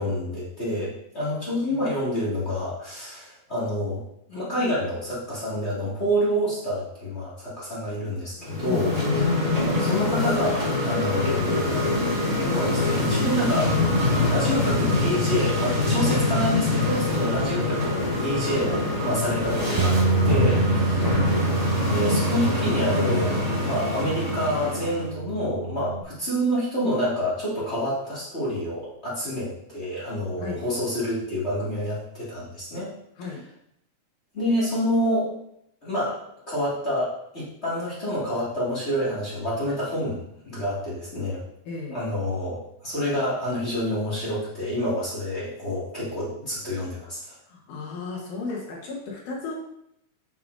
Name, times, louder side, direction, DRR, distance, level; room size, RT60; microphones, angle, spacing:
voice 1, 0.0-4.0 4.3-9.3 9.8-11.9 12.4-13.7 14.0-20.0 20.2-21.1 21.9-32.9 34.3-35.3 35.8-36.2 36.5-41.4 41.9-47.3, equal, 25° left, -8 dB, 2.1 m, -28 dB
sound 1, 8.4-25.1, left 2 dB, 25° right, 0.9 m, -24 dB
sound 2, 19.8-26.0, right 4 dB, 80° right, 1.4 m, -27 dB
voice 2, 41.7-42.0 47.5-49.5, left 4 dB, 85° left, -3 dB, 2.8 m, -34 dB
7.2 x 6.6 x 2.7 m, 0.76 s
omnidirectional pair, 3.5 m